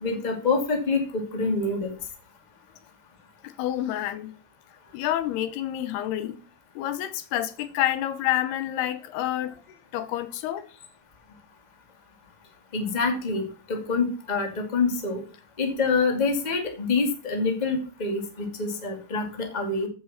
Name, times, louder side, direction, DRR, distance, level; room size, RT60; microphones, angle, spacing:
voice 1, 0.0-2.0 12.7-15.2 15.6-19.9, left 4 dB, 15° left, 1.6 m, -26 dB
voice 2, 3.6-4.3 4.9-6.4 6.8-9.6 9.9-10.7, left 13 dB, 90° left, 3.0 m, -28 dB
14.5 x 8.4 x 4.3 m
omnidirectional pair, 4.5 m